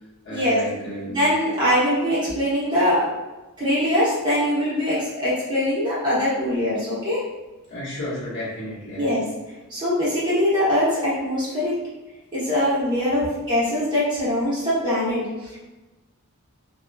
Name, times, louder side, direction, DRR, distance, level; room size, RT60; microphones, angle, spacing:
voice 1, 0.2-1.3 7.7-9.3 13.0-13.1, left 1 dB, 55° left, -8 dB, 1.0 m, -33 dB
voice 2, 1.1-3.1 3.6-7.2 9.0-9.2 9.7-11.8 12.3-15.6, left 1 dB, 20° right, -10 dB, 1.1 m, -22 dB
2.9 x 2.3 x 2.4 m, 1.1 s
head